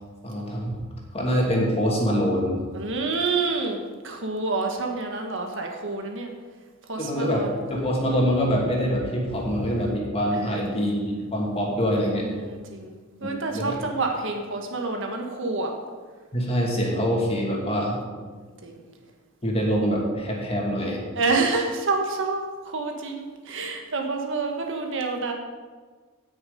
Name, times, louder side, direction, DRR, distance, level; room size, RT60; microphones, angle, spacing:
voice 1, 0.2-0.8 1.1-2.6 7.0-12.3 13.5-13.8 16.3-18.0 19.4-21.0, equal, 25° left, -1 dB, 2.5 m, -24 dB
voice 2, 2.7-3.8 4.0-6.3 6.9-7.6 10.3-10.7 12.1-12.9 13.2-15.7 18.6-18.8 21.1-25.3, right 3 dB, 60° right, 3 dB, 1.6 m, -28 dB
16.5 x 6.5 x 5.4 m, 1.5 s
head